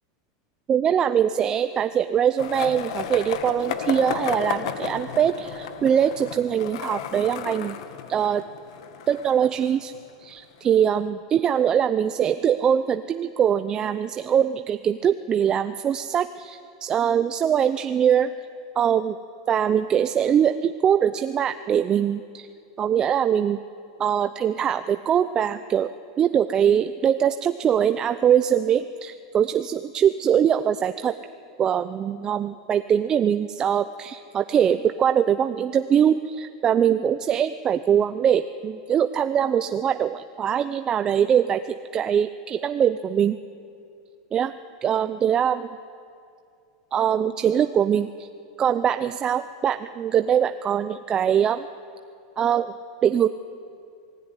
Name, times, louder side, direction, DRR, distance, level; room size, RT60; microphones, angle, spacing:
voice 1, 0.7-7.8 8.1-8.4 9.1-9.9 10.2-18.3 18.8-19.2 19.5-22.5 22.8-23.6 24.0-25.9 26.2-31.2 31.6-43.4 44.3-44.5 44.8-45.7 46.9-48.3 48.6-51.7 52.4-52.7 53.0-53.3, right 9 dB, 25° right, 10 dB, 0.6 m, -22 dB
Skateboard, 2.4-10.3, left 9 dB, 70° left, 1.8 m, -33 dB
26.5 x 19.0 x 9.9 m, 2.4 s
supercardioid pair, 130°, 3 cm